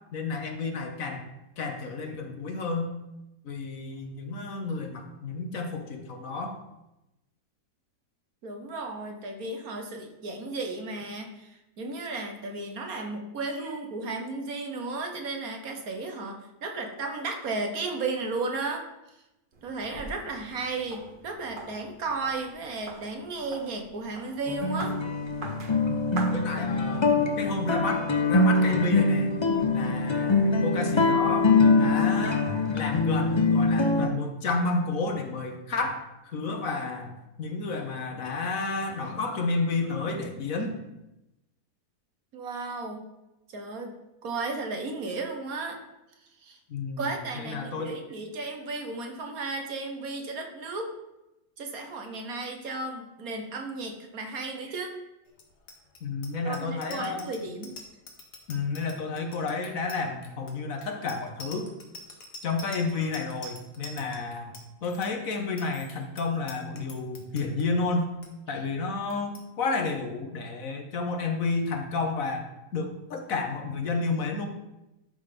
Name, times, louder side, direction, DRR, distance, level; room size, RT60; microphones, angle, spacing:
voice 1, 0.1-1.2 1.6-2.9 3.4-6.6 25.9-26.0 26.3-29.3 29.7-31.5 31.8-32.5 32.7-40.8 46.7-47.9 56.0-57.3 58.5-61.7 62.4-64.5 64.8-68.1 68.5-72.5 72.7-74.5, left 3 dB, 60° left, 4 dB, 1.4 m, -31 dB
voice 2, 8.4-18.8 19.6-24.9 42.3-43.1 43.5-43.9 44.2-45.8 46.4-46.6 47.0-50.9 51.6-55.0 56.4-57.7, right 3 dB, 65° right, 4 dB, 1.6 m, -34 dB
sound 1, 19.5-27.1, right 3 dB, 40° right, 0.9 m, -44 dB
sound 2, 24.5-34.1, left 3 dB, 35° left, 0.4 m, -23 dB
Bicycle bell, 55.3-67.6 68.0-68.3 68.5-68.8 69.1-69.4, left 2 dB, 85° left, 1.8 m, -46 dB
12.0 x 4.0 x 5.1 m, 0.94 s
omnidirectional pair, 1.7 m